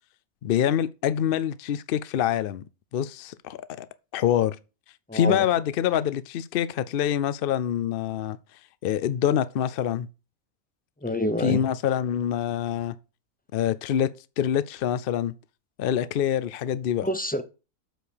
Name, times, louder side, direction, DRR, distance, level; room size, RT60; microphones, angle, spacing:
voice 1, 0.4-2.6 2.9-3.9 4.1-4.6 5.1-8.4 8.8-10.1 11.4-13.0 13.5-15.3 15.8-17.1, left 10 dB, 65° left, 0.5 m, -25 dB
voice 2, 5.1-5.5 11.0-11.7 17.0-17.4, left 1 dB, 10° left, 0.5 m, -27 dB
7.8 x 4.8 x 6.9 m
omnidirectional pair, 1.5 m